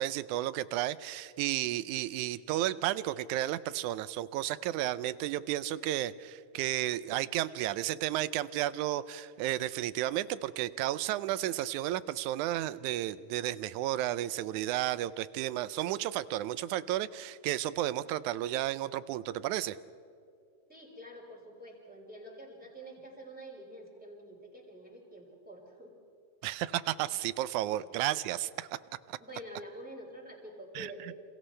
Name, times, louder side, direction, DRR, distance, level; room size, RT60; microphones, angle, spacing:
voice 1, 0.0-19.8 26.4-28.8 29.1-29.2 30.8-31.1, right 14 dB, 80° right, 16 dB, 1.9 m, -33 dB
voice 2, 20.7-25.9 27.7-27.9 29.2-31.2, equal, ahead, -3 dB, 5.6 m, -47 dB
29.5 x 28.0 x 3.3 m, 2.5 s
omnidirectional pair, 3.7 m